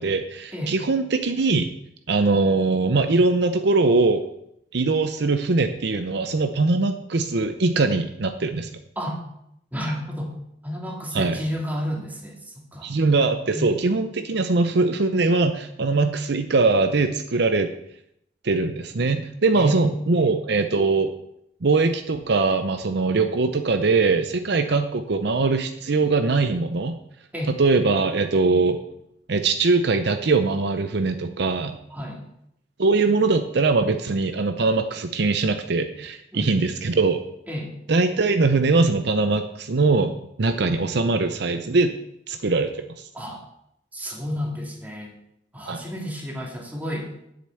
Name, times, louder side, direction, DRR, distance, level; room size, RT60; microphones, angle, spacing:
voice 1, 0.0-1.7 2.1-4.2 4.7-8.7 11.1-11.4 12.8-17.7 18.4-21.1 21.6-26.9 27.6-28.8 29.3-31.8 32.8-37.2 37.9-41.9 42.3-42.7 45.7-45.8, right 3 dB, 65° right, 8 dB, 0.7 m, -21 dB
voice 2, 9.7-10.4 10.6-12.9 13.5-13.7 19.5-20.3 27.3-27.5 31.9-32.2 36.3-36.7 37.5-37.7 43.1-43.4 43.9-45.1 45.5-47.1, equal, 10° right, -1 dB, 2.3 m, -31 dB
7.7 x 6.7 x 8.2 m, 0.76 s
head